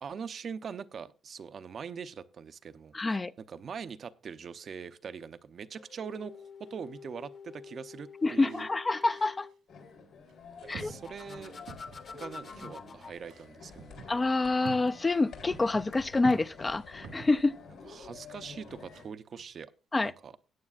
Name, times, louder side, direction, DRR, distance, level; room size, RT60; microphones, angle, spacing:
voice 1, 0.0-2.9 3.5-8.7 10.7-11.6 12.1-14.1 17.9-19.7 20.0-20.3, right 6 dB, 50° right, 0.6 m, -42 dB
voice 2, 2.9-3.3 8.2-9.5 10.7-10.9 14.1-17.5 19.9-20.1, left 3 dB, 25° left, 0.4 m, -27 dB
sound 1, 5.8-9.5 10.9-13.2, left 5 dB, 50° left, 1.1 m, -48 dB
sound 2, 8.5-8.6 9.0-9.5 10.3-10.4 10.7-12.1 12.4-12.6 13.2-17.4 18.2-19.1 19.4-19.5, right 5 dB, 80° right, 1.9 m, -47 dB
sound 3, 9.7-19.0, left 4 dB, 75° left, 3.7 m, -49 dB
17.0 x 8.7 x 2.4 m
cardioid pair, 90°, 0 cm